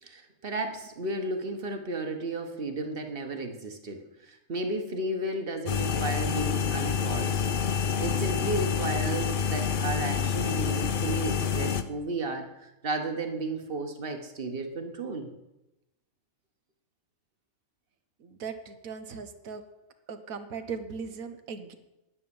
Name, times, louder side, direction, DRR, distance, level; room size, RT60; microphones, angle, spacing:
voice 1, 0.0-7.4 8.0-15.3, right 2 dB, 45° right, 6 dB, 1.5 m, -33 dB
sound 1, 5.7-11.8, left 6 dB, 50° left, 0.7 m, -28 dB
voice 2, 18.2-19.6 20.1-21.8, right 5 dB, 90° right, 9 dB, 1.5 m, -38 dB
9.9 x 9.4 x 7.1 m, 0.94 s
omnidirectional pair, 1.4 m